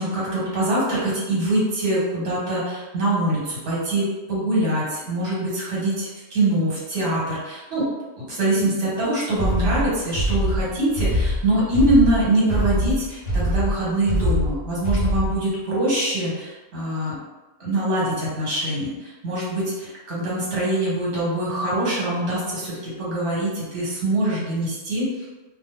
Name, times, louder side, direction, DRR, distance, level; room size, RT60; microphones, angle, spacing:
voice 1, 0.0-7.8 8.2-17.2 17.6-25.2, right 1 dB, 60° right, -7 dB, 1.3 m, -24 dB
sound 1, 9.4-15.4, equal, 60° left, 0.5 m, -23 dB
2.4 x 2.1 x 3.1 m, 1.2 s
omnidirectional pair, 1.4 m